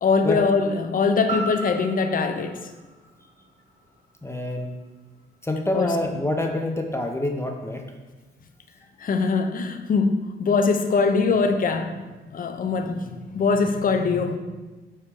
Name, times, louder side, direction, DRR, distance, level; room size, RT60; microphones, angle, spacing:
voice 1, 0.0-2.6 5.7-5.9 9.0-11.9 12.3-13.1 13.3-14.4, left 4 dB, 45° left, 7 dB, 0.7 m, -22 dB
sound 1, 1.3-5.4 5.8-5.9, right 2 dB, 35° right, 1.7 m, -37 dB
voice 2, 4.2-4.8 5.4-7.8, left 1 dB, 15° left, 3 dB, 0.8 m, -26 dB
8.7 x 3.2 x 4.8 m, 1.2 s
cardioid pair, 90°, 20 cm